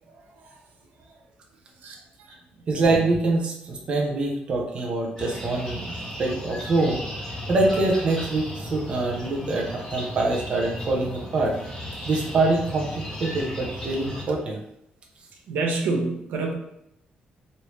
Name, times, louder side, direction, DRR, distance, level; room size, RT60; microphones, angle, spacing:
voice 1, 1.8-2.3 15.5-16.5, right 3 dB, 80° right, 1 dB, 0.7 m, -27 dB
voice 2, 2.7-5.9 6.2-7.0 7.5-11.5 12.1-14.6, right 2 dB, 35° right, 0 dB, 0.6 m, -24 dB
sound 1, 5.2-14.2, equal, 20° left, 1.2 m, -35 dB
3.1 x 2.6 x 3.0 m, 0.79 s
cardioid pair, 155°, 3 cm